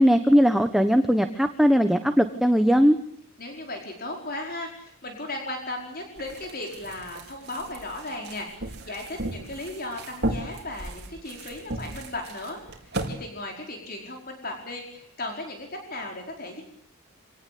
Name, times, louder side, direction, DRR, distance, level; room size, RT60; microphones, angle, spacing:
voice 1, 0.0-3.0, equal, ahead, 7 dB, 1.2 m, -19 dB
voice 2, 3.4-12.6 13.1-16.6, left 2 dB, 45° left, 2 dB, 5.0 m, -36 dB
sound 1, 6.2-13.1, right 1 dB, 50° right, 4.9 m, -35 dB
27.5 x 19.0 x 8.6 m, 0.65 s
head